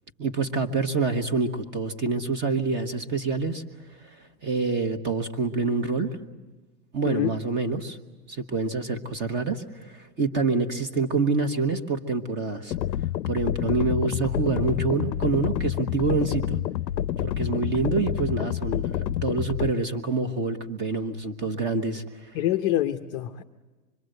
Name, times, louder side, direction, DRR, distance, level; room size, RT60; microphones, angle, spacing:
voice 1, 0.2-3.6 4.1-6.1 6.9-8.0 8.3-12.7 13.3-16.6 17.2-22.4, right 4 dB, 20° right, 8 dB, 1.3 m, -27 dB
sound 1, 12.7-19.7, left 12 dB, 90° left, 0.7 m, -28 dB
voice 2, 22.3-23.4, left 13 dB, 25° left, 5 dB, 0.7 m, -26 dB
25.5 x 22.0 x 7.9 m, 1.3 s
hypercardioid pair, 140°, 49 cm